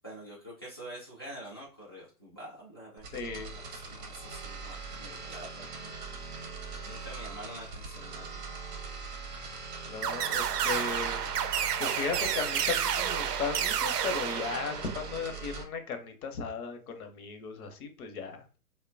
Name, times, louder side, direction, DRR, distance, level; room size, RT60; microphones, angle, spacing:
voice 1, 0.0-8.4, right 1 dB, 20° left, 0.3 m, -47 dB
sound 1, 3.0-15.6, right 4 dB, 35° right, 0.7 m, -41 dB
voice 2, 3.1-3.5 7.2-7.3 9.8-11.4 11.8-18.4, left 5 dB, 65° left, 0.7 m, -36 dB
sound 2, 10.0-15.2, right 9 dB, 80° right, 0.5 m, -30 dB
2.8 x 2.1 x 2.4 m
hypercardioid pair, 130°, 47 cm